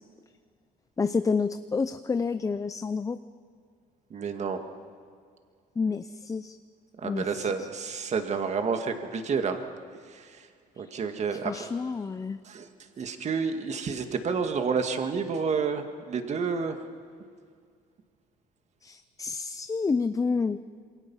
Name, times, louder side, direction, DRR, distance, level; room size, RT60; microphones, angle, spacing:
voice 1, 1.0-3.2 5.8-6.6 7.0-7.7 10.8-10.9 11.3-12.4 18.8-20.6, left 4 dB, 20° left, 11 dB, 0.6 m, -29 dB
voice 2, 4.1-4.6 7.0-9.6 10.8-11.6 12.5-12.7 13.0-16.8, right 5 dB, 40° right, 6 dB, 2.0 m, -29 dB
27.0 x 23.0 x 5.7 m, 2.1 s
cardioid pair, 110°, 17 cm